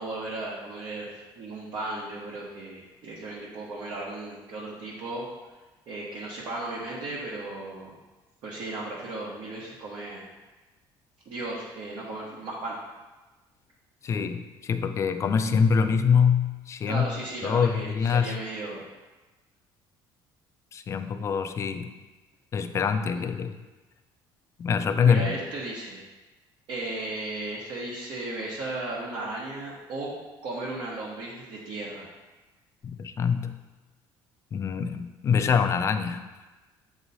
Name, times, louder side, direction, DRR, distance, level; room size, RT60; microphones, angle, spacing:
voice 1, 0.0-5.2 5.9-8.0 8.4-10.3 11.3-12.8 16.9-18.8 23.1-23.2 25.0-26.0 26.7-30.1 30.4-32.1, right 2 dB, 60° right, -7 dB, 1.1 m, -35 dB
voice 2, 14.0-17.1 17.4-18.4 20.7-21.9 22.5-23.5 24.6-25.3 32.8-33.5 34.5-36.2, left 6 dB, 30° left, 8 dB, 0.4 m, -24 dB
7.6 x 3.0 x 4.1 m, 1.2 s
cardioid pair, 145°, 9 cm